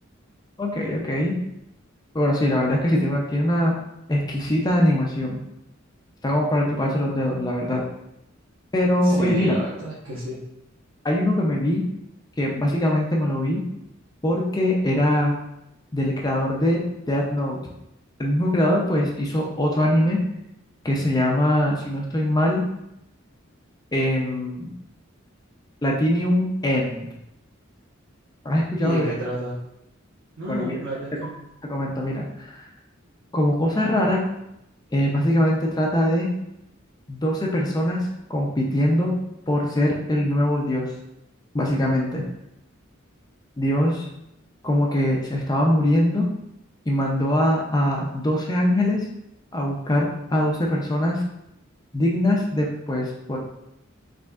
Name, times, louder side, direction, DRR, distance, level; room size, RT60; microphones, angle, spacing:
voice 1, 0.6-1.3 2.1-3.8 4.1-5.4 6.2-7.8 8.7-9.5 11.0-11.8 12.4-13.6 14.2-15.3 15.9-16.8 17.1-17.6 18.2-20.2 20.8-22.6 23.9-24.7 25.8-27.1 28.4-29.1 30.5-30.8 31.7-32.7 33.3-34.2 34.9-36.3 37.1-38.0 38.3-39.1 39.5-40.9 41.5-42.2 43.6-44.1 44.6-46.3 46.9-49.1 49.5-51.2 51.9-53.4, left 1 dB, 20° left, -2 dB, 0.5 m, -22 dB
voice 2, 9.0-10.4 28.8-29.6 30.4-31.4, right 1 dB, 85° right, -8 dB, 1.1 m, -30 dB
5.0 x 3.5 x 2.4 m, 0.84 s
head